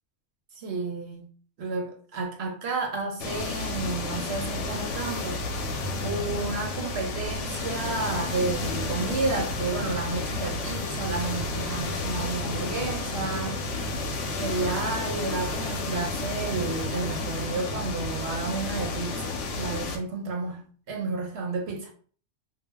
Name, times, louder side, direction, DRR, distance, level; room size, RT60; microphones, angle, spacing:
voice 1, 0.6-1.2 1.6-5.4 6.0-13.7 14.3-20.6 20.9-21.9, right 3 dB, 65° right, 0.9 m, -31 dB
sound 1, 3.2-20.0, left 3 dB, 85° left, 0.9 m, -31 dB
2.3 x 2.0 x 3.3 m
omnidirectional pair, 1.2 m